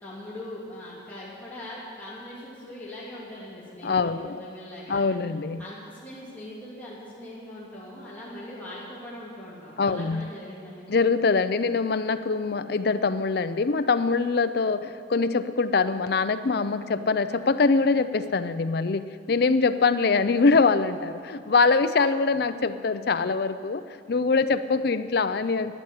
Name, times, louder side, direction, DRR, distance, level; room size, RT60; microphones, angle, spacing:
voice 1, 0.0-5.1 5.6-11.1, left 1 dB, 10° left, -9 dB, 2.9 m, -41 dB
voice 2, 3.8-4.4 4.9-5.6 9.8-10.3 10.9-23.8 24.1-25.7, left 4 dB, 55° left, 11 dB, 0.5 m, -23 dB
12.5 x 9.8 x 8.3 m, 2.4 s
head